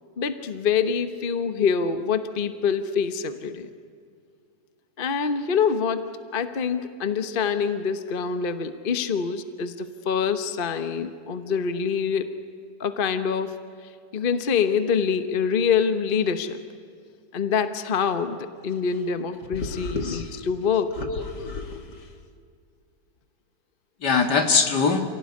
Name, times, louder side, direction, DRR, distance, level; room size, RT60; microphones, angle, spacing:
voice 1, 0.2-3.7 5.0-6.1 6.3-12.3 12.8-13.6 14.1-16.6 17.3-21.0, left 6 dB, 35° left, 10 dB, 1.1 m, -25 dB
voice 2, 19.6-20.3 21.0-21.8 24.0-25.0, left 5 dB, 70° left, 6 dB, 2.5 m, -24 dB
28.0 x 17.5 x 9.7 m, 2.3 s
omnidirectional pair, 1.9 m